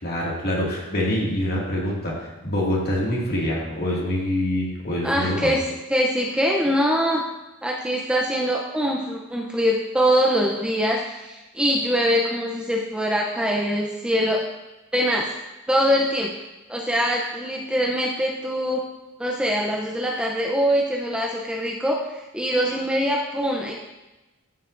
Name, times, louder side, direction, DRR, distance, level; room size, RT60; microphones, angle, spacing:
voice 1, 0.0-5.6, left 1 dB, 45° left, -4 dB, 2.1 m, -25 dB
voice 2, 5.0-5.6 5.9-7.2 7.6-14.4 14.9-15.3 15.7-16.3 16.7-18.8 19.2-23.7, equal, 5° right, -2 dB, 0.6 m, -23 dB
13.0 x 5.6 x 2.6 m, 1.1 s
head